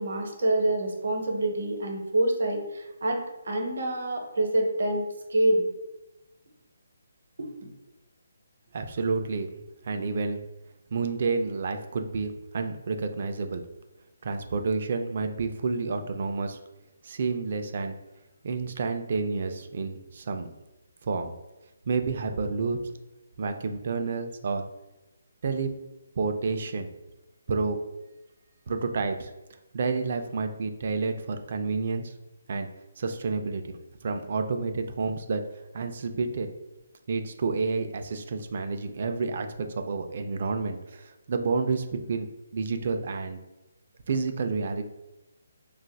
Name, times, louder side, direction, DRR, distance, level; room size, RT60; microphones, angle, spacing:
voice 1, 0.0-3.2 3.4-5.0 5.3-5.7, right 1 dB, 70° right, 2 dB, 0.7 m, -26 dB
voice 2, 8.7-10.4 10.9-13.6 14.2-16.6 17.0-18.0 18.4-20.5 21.0-21.3 21.9-22.9 23.4-24.7 25.4-25.7 26.2-26.9 27.5-27.8 28.7-29.3 29.7-32.1 32.5-32.7 33.0-35.4 35.7-36.5 37.1-43.4 44.1-44.8, right 4 dB, 45° right, 7 dB, 0.3 m, -29 dB
3.9 x 2.3 x 2.2 m, 0.98 s
hypercardioid pair, 165°, 0 cm